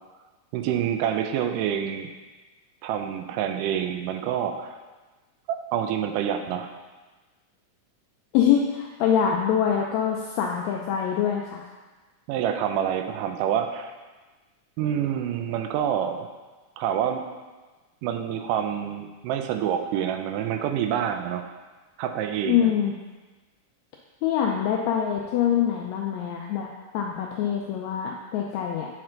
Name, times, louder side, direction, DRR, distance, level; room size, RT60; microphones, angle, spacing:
voice 1, 0.5-2.1 2.8-4.8 5.5-6.7 12.3-13.9 14.8-16.3 16.8-17.2 18.0-21.4 22.0-22.7, right 9 dB, 90° right, 6 dB, 2.1 m, -27 dB
voice 2, 8.3-11.6 22.5-22.9 24.2-28.9, left 8 dB, 85° left, 0 dB, 1.6 m, -24 dB
7.7 x 4.4 x 3.8 m, 1.3 s
omnidirectional pair, 3.7 m